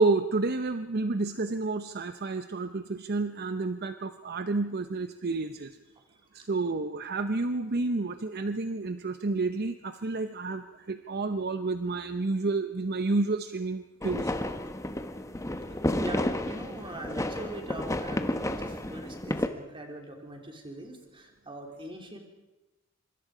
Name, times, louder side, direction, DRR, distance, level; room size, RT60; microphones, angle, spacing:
voice 1, 0.0-5.7 6.5-14.3, right 3 dB, 50° right, 10 dB, 0.7 m, -30 dB
sound 1, 14.0-19.5, left 1 dB, 15° left, 1.1 m, -31 dB
voice 2, 16.0-22.2, right 1 dB, 25° right, 2 dB, 3.6 m, -42 dB
25.0 x 25.0 x 5.0 m, 1.0 s
head